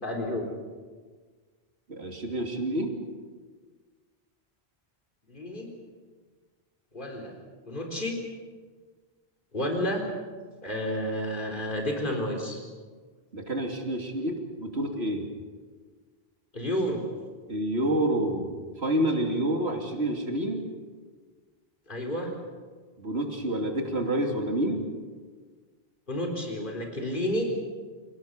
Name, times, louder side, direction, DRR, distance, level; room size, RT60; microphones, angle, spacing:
voice 1, 0.0-0.5 5.3-5.7 6.9-7.3 7.7-8.2 9.5-10.0 10.6-12.6 16.5-17.0 21.9-22.3 26.1-27.4, left 1 dB, 50° left, 1 dB, 4.0 m, -30 dB
voice 2, 1.9-3.0 13.3-15.2 17.5-18.5 18.8-20.6 23.0-24.8, right 1 dB, 85° right, 2 dB, 3.1 m, -28 dB
28.5 x 17.5 x 6.7 m, 1.5 s
omnidirectional pair, 1.1 m